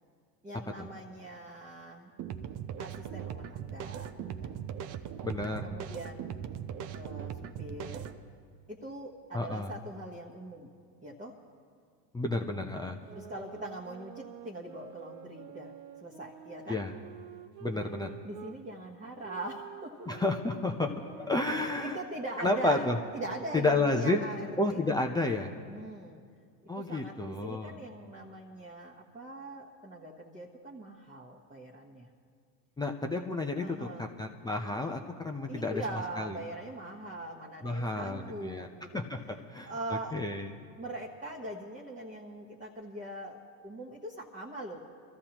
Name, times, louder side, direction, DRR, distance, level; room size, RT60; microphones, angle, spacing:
voice 1, 0.4-2.1 2.8-4.2 4.4-4.6 5.4-6.5 6.9-8.2 8.7-10.7 11.0-11.4 13.1-15.7 16.0-16.8 17.7-17.9 18.2-20.1 21.8-24.9 25.7-26.2 26.8-32.1 33.6-34.1 35.5-40.2 40.8-44.8, right 1 dB, 15° right, -4 dB, 1.2 m, -42 dB
sound 1, 2.2-8.2, right 9 dB, 40° right, 0.7 m, -39 dB
voice 2, 5.2-5.7 9.3-9.7 12.1-13.0 16.7-16.9 17.6-18.1 20.1-22.0 22.4-23.0 23.5-24.2 24.6-25.5 26.7-27.8 32.8-35.8 36.2-36.4 37.6-38.7 38.9-39.2 39.5-39.7 40.1-40.5, left 2 dB, 10° left, 2 dB, 0.6 m, -31 dB
sound 2, 13.1-18.6 19.2-24.8, right 11 dB, 80° right, 0.8 m, -49 dB
24.0 x 14.0 x 3.0 m, 2.1 s
hypercardioid pair, 100°, 50 cm